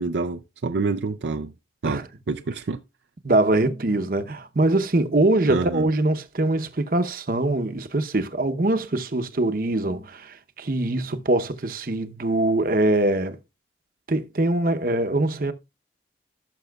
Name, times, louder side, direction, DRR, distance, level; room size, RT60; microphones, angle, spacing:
voice 1, 0.0-1.5 1.8-2.8 5.5-5.9, right 4 dB, 70° right, 0.5 m, -27 dB
voice 2, 3.2-13.4 14.1-15.5, right 2 dB, 50° right, 0.8 m, -23 dB
16.5 x 6.9 x 2.3 m
head